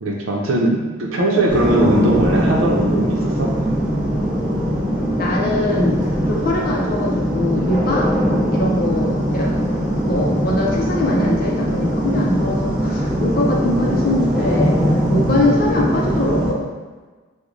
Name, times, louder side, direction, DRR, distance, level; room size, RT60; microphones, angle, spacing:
voice 1, 0.0-3.6, right 1 dB, 85° right, -1 dB, 0.6 m, -19 dB
sound 1, 1.5-16.5, equal, 5° right, 0.7 m, -20 dB
voice 2, 5.2-6.0 6.3-8.1 8.5-9.5 10.0-16.6, left 1 dB, 45° left, -2 dB, 0.4 m, -22 dB
3.1 x 2.1 x 3.8 m, 1.3 s
head